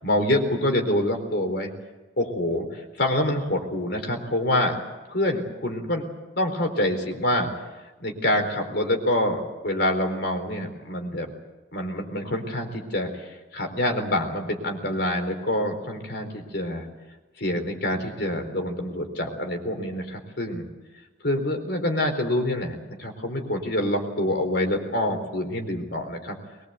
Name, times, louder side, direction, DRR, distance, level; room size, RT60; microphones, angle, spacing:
voice 1, 0.0-1.7 2.2-4.7 5.1-6.1 6.4-7.5 8.0-11.3 11.7-13.3 13.5-16.8 17.4-20.7 21.2-26.4, left 1 dB, 55° left, 4 dB, 4.3 m, -26 dB
23.0 x 21.0 x 8.2 m, 1.2 s
head